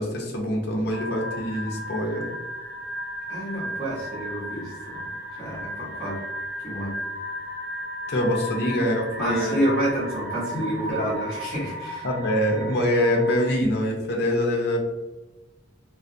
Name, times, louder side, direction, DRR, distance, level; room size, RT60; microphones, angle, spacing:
voice 1, 0.0-2.3 8.1-9.6 10.5-10.6 10.9-11.0 12.0-14.8, equal, 60° left, 0 dB, 0.6 m, -24 dB
sound 1, 0.9-13.5, equal, 55° right, 0.7 m, -35 dB
voice 2, 3.3-5.1 5.4-6.2 6.6-6.9 9.2-12.1, right 1 dB, 5° right, -14 dB, 0.9 m, -29 dB
2.3 x 2.1 x 2.6 m, 1.1 s
head